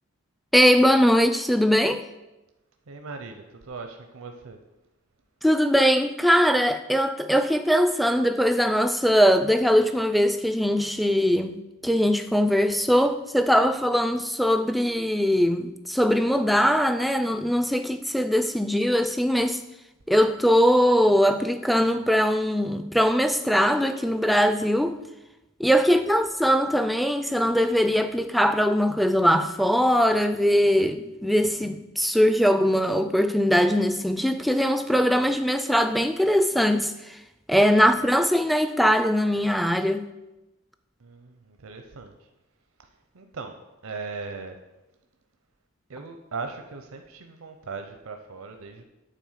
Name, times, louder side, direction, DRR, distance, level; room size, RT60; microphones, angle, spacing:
voice 1, 0.5-2.1 5.4-11.6 11.8-19.6 20.1-25.0 25.6-37.2 37.5-40.0, equal, ahead, 0.3 m, -21 dB
voice 2, 2.9-4.6 37.7-37.8 41.0-42.3 43.1-44.5 45.9-48.8, right 4 dB, 80° right, 0.6 m, -39 dB
9.1 x 4.3 x 7.3 m
head